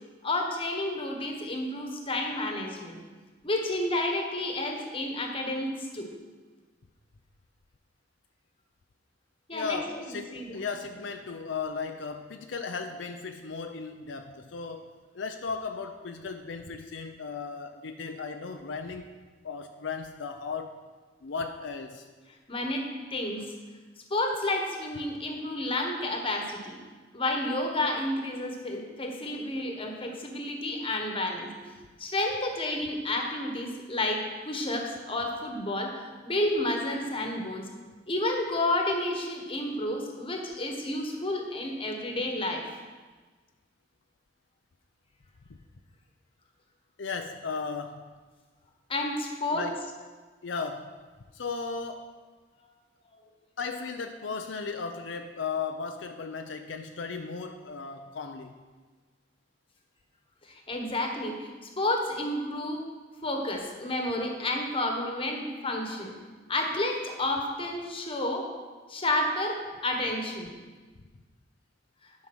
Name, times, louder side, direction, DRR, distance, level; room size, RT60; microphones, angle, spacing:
voice 1, 0.2-3.0 3.4-6.1 9.5-10.6 22.5-23.4 24.1-26.8 27.1-31.7 32.0-37.7 38.1-42.7 48.9-49.6 60.5-61.5 61.8-62.9 63.2-66.1 66.5-68.5 68.9-70.5, left 1 dB, 30° left, 2 dB, 1.3 m, -30 dB
voice 2, 9.5-14.9 15.1-19.1 19.4-20.7 21.2-22.1 47.0-48.0 49.5-49.8 50.4-51.0 51.3-52.1 53.6-58.6, left 5 dB, 75° left, 6 dB, 0.6 m, -36 dB
10.5 x 5.4 x 6.2 m, 1.4 s
head